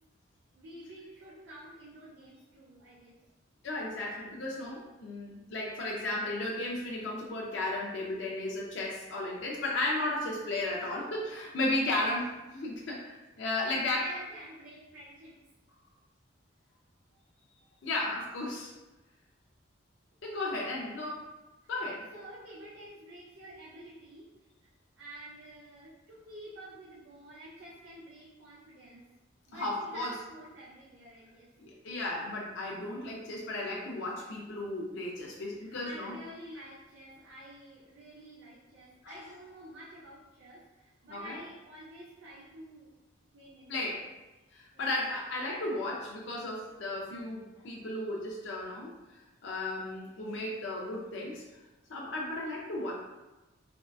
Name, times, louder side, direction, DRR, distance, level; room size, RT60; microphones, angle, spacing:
voice 1, 0.5-3.2 13.9-15.4 22.1-24.3 24.6-24.7 25.0-29.0 29.5-31.5 35.6-42.9 43.3-44.0 44.7-44.9, right 1 dB, 70° right, -7 dB, 0.6 m, -49 dB
voice 2, 3.6-14.1 17.8-18.7 20.2-21.2 21.7-22.1 29.5-30.2 31.6-36.2 39.0-39.2 41.1-41.4 43.7-44.1 44.5-51.4 51.9-52.9, left 2 dB, 70° left, -3 dB, 0.5 m, -34 dB
3.6 x 2.3 x 2.3 m, 1.1 s
head